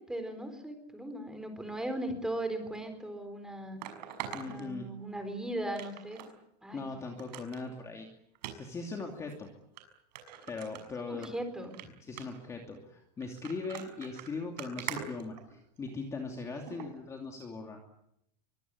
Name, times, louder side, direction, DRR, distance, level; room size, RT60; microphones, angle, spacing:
voice 1, 0.0-3.8 4.3-6.2 6.6-6.9 11.1-11.8, right 1 dB, 5° right, 8 dB, 4.0 m, -38 dB
sound 1, 2.7-2.8 3.8-5.3 5.8-6.3 6.7-6.8 7.2-7.6 8.4-8.6 9.3-9.4 9.8-9.9 10.2-11.3 11.6-11.9 12.2-12.5 13.2-15.9 16.7-16.9 17.4-17.5, right 10 dB, 90° right, 6.2 m, -43 dB
voice 2, 4.3-4.9 6.7-8.1 8.5-9.5 10.5-11.3 12.0-17.8, left 3 dB, 15° left, 2 dB, 2.7 m, -40 dB
24.0 x 24.0 x 9.7 m, 0.77 s
supercardioid pair, 180°, 21 cm